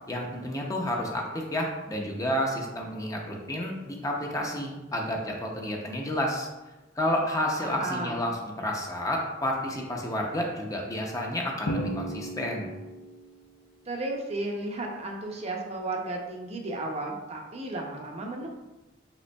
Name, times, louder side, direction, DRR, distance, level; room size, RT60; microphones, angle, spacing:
voice 1, 0.1-6.5 7.0-12.7, left 1 dB, 20° left, 0 dB, 0.5 m, -30 dB
voice 2, 7.6-8.2 13.9-18.5, right 2 dB, 35° right, 1 dB, 0.5 m, -34 dB
Drum, 11.7-13.4, right 1 dB, 80° left, 0.6 m, -34 dB
5.1 x 3.8 x 2.2 m, 1.0 s
head